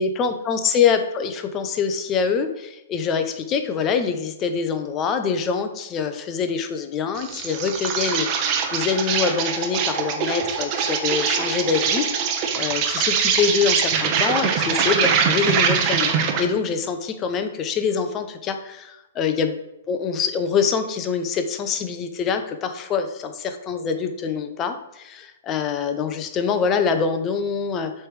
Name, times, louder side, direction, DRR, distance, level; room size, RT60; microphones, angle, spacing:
voice 1, 0.0-19.6 19.9-27.9, left 6 dB, 25° left, 7 dB, 0.7 m, -25 dB
Insect, 7.1-16.5, right 6 dB, 35° right, 1.0 m, -23 dB
7.5 x 3.4 x 4.8 m, 0.91 s
hypercardioid pair, 140°, 0 cm